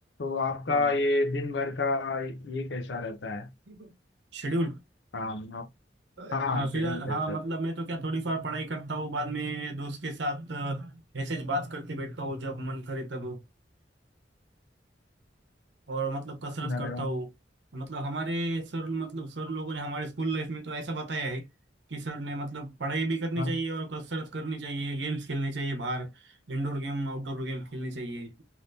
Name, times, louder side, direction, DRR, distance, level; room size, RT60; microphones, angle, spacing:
voice 1, 0.2-3.5 5.1-5.7 6.3-7.4 16.6-17.1 23.4-23.5, left 3 dB, 70° left, 0.6 m, -30 dB
voice 2, 4.3-4.8 6.2-13.4 15.9-17.3 17.7-21.5 21.9-28.4, right 2 dB, 80° right, 0.9 m, -33 dB
3.3 x 2.7 x 2.6 m
head